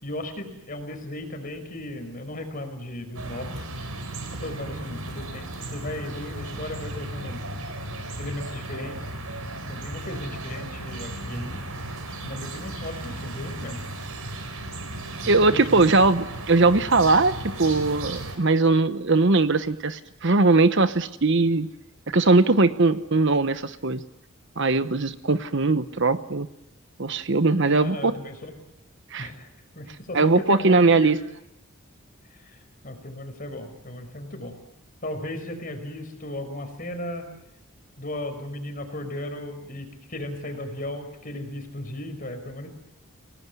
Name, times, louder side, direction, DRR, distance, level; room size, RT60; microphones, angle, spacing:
voice 1, 0.0-3.7 4.4-7.4 8.2-9.1 9.7-11.6 12.1-13.8 15.2-15.8 27.6-28.6 29.2-29.5 29.8-31.2 32.3-32.6 32.8-34.6 35.0-37.3 38.0-42.7, left 1 dB, 40° left, 6 dB, 5.3 m, -36 dB
sound 1, 3.1-18.4, right 2 dB, 85° right, 4.3 m, -35 dB
voice 2, 15.3-17.3 17.6-21.7 22.1-24.0 24.6-26.5 27.0-28.1 29.1-29.3 30.1-31.2, right 3 dB, 55° right, 12 dB, 1.0 m, -20 dB
29.0 x 18.5 x 9.6 m, 0.84 s
head